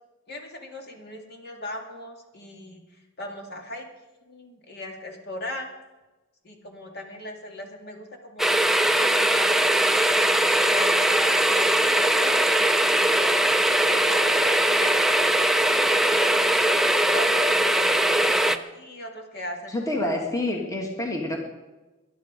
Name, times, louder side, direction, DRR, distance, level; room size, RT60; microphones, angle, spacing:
voice 1, 0.3-2.8 3.2-3.9 4.3-5.7 6.4-8.6 8.9-13.4 13.9-16.8 17.1-20.0, left 1 dB, 50° left, 2 dB, 2.4 m, -38 dB
sound 1, 8.4-18.6, right 1 dB, ahead, 0.5 m, -21 dB
voice 2, 19.7-21.4, left 1 dB, 15° left, 1 dB, 1.9 m, -27 dB
21.0 x 11.0 x 5.1 m, 1.1 s
head